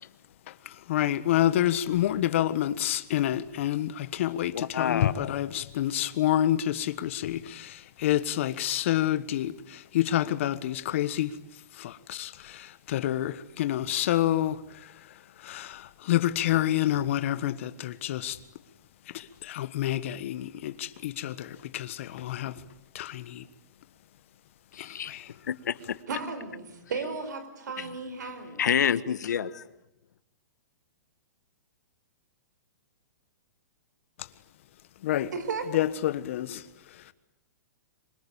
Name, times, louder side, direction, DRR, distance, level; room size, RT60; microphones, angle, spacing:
voice 1, 0.5-11.4 11.7-15.1 15.4-18.4 19.1-22.6 22.9-23.5 24.8-25.3 35.0-35.3 35.7-37.1, left 12 dB, 45° left, 1.4 m, -28 dB
voice 2, 4.5-5.4 24.7-25.2 25.4-26.0 27.8-27.9 28.6-29.6, left 8 dB, 80° left, 1.4 m, -28 dB
voice 3, 26.1-28.6 35.3-35.8, right 4 dB, 90° right, 5.1 m, -35 dB
26.5 x 24.0 x 8.8 m
hypercardioid pair, 170°, 9 cm